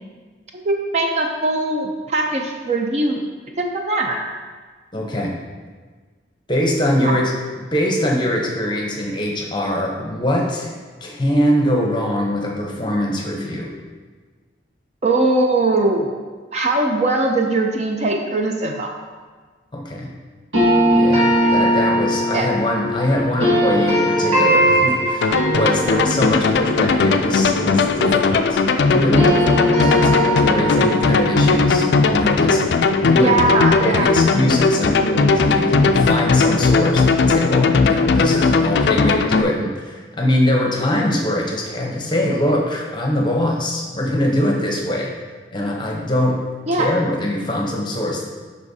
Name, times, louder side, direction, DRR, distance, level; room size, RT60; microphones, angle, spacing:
voice 1, 0.6-3.2 3.6-4.2 7.0-7.2 15.0-16.1 16.5-18.9 21.4-21.5 22.3-22.5 33.1-34.1 46.7-46.9, right 2 dB, 35° right, 2 dB, 0.5 m, -20 dB
voice 2, 4.9-5.4 6.5-7.3 7.6-10.7 11.0-13.7 19.7-20.1 20.9-28.6 28.9-33.4 33.8-45.1 45.5-46.4 46.7-48.3, left 1 dB, 25° left, 0 dB, 0.8 m, -22 dB
sound 1, 20.5-28.6 28.9-33.9, equal, 85° right, 2.0 m, -20 dB
sound 2, 25.2-39.4, left 4 dB, 65° left, 0.3 m, -17 dB
8.1 x 5.6 x 2.7 m, 1.4 s
head